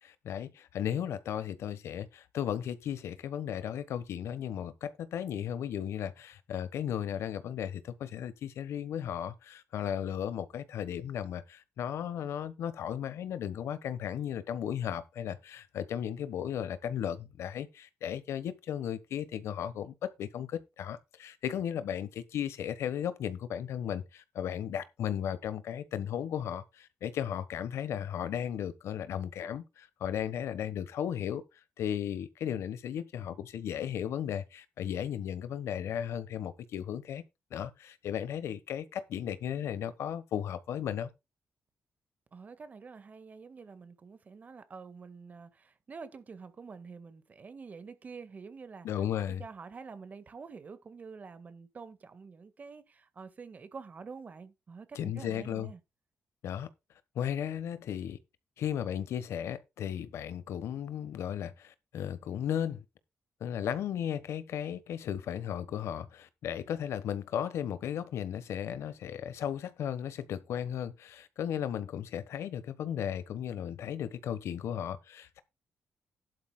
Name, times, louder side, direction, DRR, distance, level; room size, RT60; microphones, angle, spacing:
voice 1, 0.0-31.4 31.8-37.2 37.5-41.1 48.8-49.4 54.9-55.7 56.4-56.7 57.1-58.2 58.6-62.8 63.4-75.4, left 9 dB, 90° left, 1.3 m, -35 dB
voice 2, 42.3-48.9 49.4-55.8, right 5 dB, 35° right, 1.7 m, -47 dB
13.0 x 11.5 x 2.3 m
cardioid pair, 135°, 4 cm